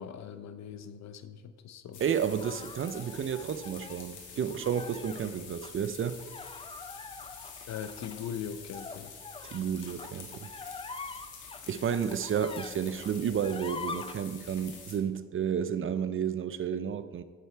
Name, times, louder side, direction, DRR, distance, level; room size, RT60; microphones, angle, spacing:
voice 1, 0.0-2.0 7.7-9.1, left 8 dB, 65° left, 0.7 m, -40 dB
sound 1, 1.9-15.0, left 5 dB, 80° left, 2.0 m, -47 dB
voice 2, 2.0-6.2 9.5-10.5 11.7-17.2, right 8 dB, 45° right, 0.5 m, -31 dB
sound 2, 2.4-4.0 4.5-5.3 5.6-5.7 6.2-12.7 13.0-14.2, left 4 dB, 20° left, 0.5 m, -44 dB
9.3 x 6.9 x 4.4 m
cardioid pair, 90°, 30 cm